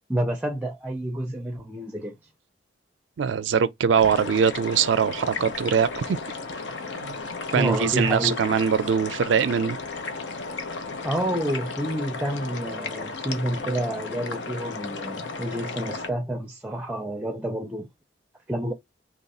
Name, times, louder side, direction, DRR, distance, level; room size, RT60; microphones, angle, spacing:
voice 1, 0.1-2.2 7.5-8.4 11.0-17.9 18.5-18.7, right 1 dB, 5° right, 0.4 m, -29 dB
voice 2, 3.2-6.2 7.0-7.2 7.5-9.8, right 7 dB, 85° right, 0.4 m, -22 dB
sound 1, 4.0-16.1, left 4 dB, 75° left, 0.8 m, -34 dB
3.0 x 2.3 x 4.1 m
head